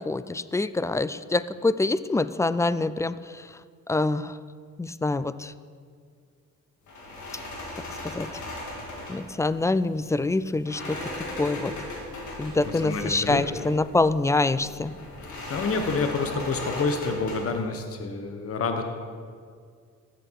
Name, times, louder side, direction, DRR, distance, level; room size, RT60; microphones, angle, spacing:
voice 1, 0.0-3.5 3.9-4.4 4.8-5.5 8.1-8.3 9.1-11.0 11.4-11.7 12.4-14.9, left 2 dB, 10° left, 15 dB, 0.3 m, -25 dB
sound 1, 6.9-17.6, left 1 dB, 75° left, 3.3 m, -38 dB
voice 2, 12.2-13.5 15.2-18.8, left 4 dB, 50° left, 5 dB, 1.3 m, -29 dB
14.0 x 8.2 x 4.8 m, 2.1 s
cardioid pair, 90°, 30 cm